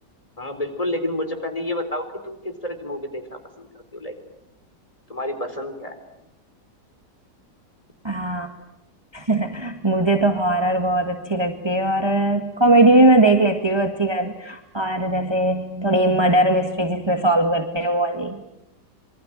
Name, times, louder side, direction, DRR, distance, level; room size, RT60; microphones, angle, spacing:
voice 1, 0.4-3.7 3.9-4.2 5.1-6.0, left 1 dB, 20° left, 7 dB, 4.2 m, -29 dB
voice 2, 8.0-8.5 9.1-18.4, right 1 dB, 15° right, 5 dB, 1.8 m, -20 dB
27.0 x 24.5 x 9.0 m, 0.84 s
omnidirectional pair, 1.8 m